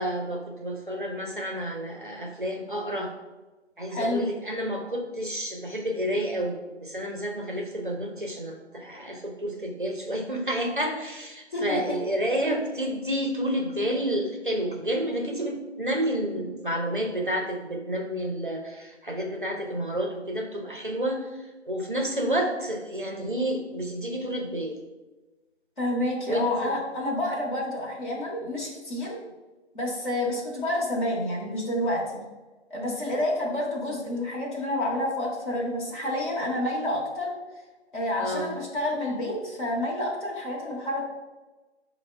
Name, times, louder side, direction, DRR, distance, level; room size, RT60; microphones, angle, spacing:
voice 1, 0.0-3.1 3.8-21.3 21.7-24.8 26.3-26.7 38.2-38.6, equal, 45° right, 2 dB, 0.5 m, -30 dB
voice 2, 3.9-4.3 5.7-5.8 11.5-12.0 25.8-29.2 29.7-32.2 32.7-37.3 37.9-41.0, left 1 dB, 45° left, -5 dB, 0.9 m, -29 dB
5.1 x 2.1 x 3.3 m, 1.2 s
figure-of-eight pair, 170°, 35 cm